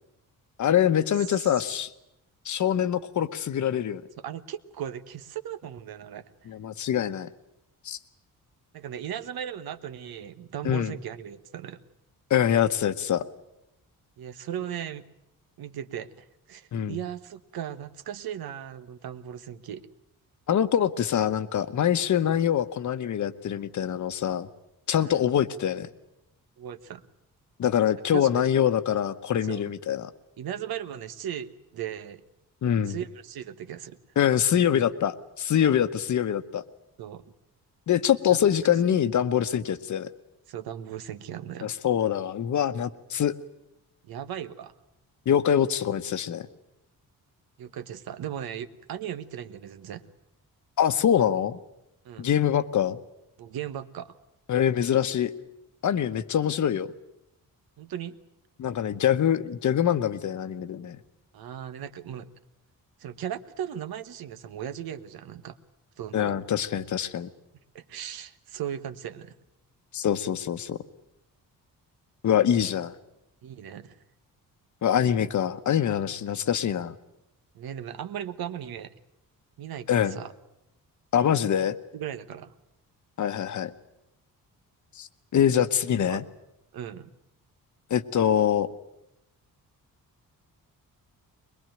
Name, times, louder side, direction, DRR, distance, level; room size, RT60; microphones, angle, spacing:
voice 1, 0.6-1.9 2.4-4.0 6.5-7.3 7.8-8.0 10.6-10.9 12.3-13.2 16.7-17.0 20.5-24.5 24.9-25.9 27.6-30.1 32.6-33.0 34.2-36.6 37.9-40.1 41.6-43.3 45.3-46.5 50.8-51.6 52.2-53.0 54.5-55.3 55.8-56.9 58.6-61.0 66.1-67.3 69.9-70.8 72.2-72.9 74.8-76.9 79.9-80.2 81.1-81.8 83.2-83.7 85.0-86.2 87.9-88.7, left 9 dB, 55° left, 12 dB, 1.0 m, -24 dB
voice 2, 4.2-6.5 8.7-11.8 14.2-15.0 15.6-19.8 24.9-25.2 26.6-27.0 28.1-28.3 29.4-29.7 30.4-32.2 32.9-34.0 37.0-37.2 38.3-38.4 38.9-39.0 40.5-41.7 44.0-44.7 47.6-50.1 52.0-52.3 53.4-54.2 57.8-58.1 61.3-62.3 63.0-65.6 66.0-66.4 67.7-69.3 73.4-74.0 77.5-78.9 79.6-80.3 81.9-82.5 86.1-86.2 86.7-87.1, right 10 dB, 85° right, 11 dB, 1.3 m, -37 dB
22.0 x 22.0 x 9.1 m, 0.85 s
wide cardioid pair, 170°, 35 cm